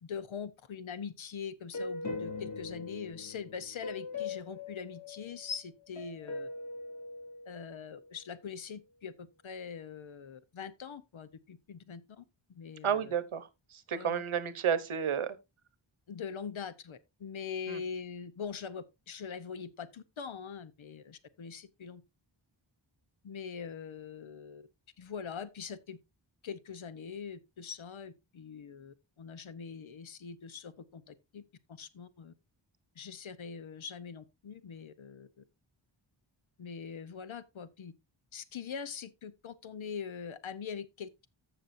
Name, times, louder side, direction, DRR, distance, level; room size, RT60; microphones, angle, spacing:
voice 1, 0.0-6.5 7.5-12.2 12.6-13.1 13.9-14.2 16.1-22.0 23.2-24.7 25.0-26.0 26.4-31.4 31.7-32.3 33.0-35.4 36.6-37.9 38.3-41.3, left 6 dB, 70° left, 1.0 m, -43 dB
sound 1, 1.7-5.6 6.0-8.0, left 3 dB, 35° left, 3.0 m, -41 dB
voice 2, 12.8-13.5 13.9-15.3 17.7-17.8, right 8 dB, 80° right, 1.0 m, -31 dB
14.5 x 6.1 x 2.6 m
wide cardioid pair, 90°, 48 cm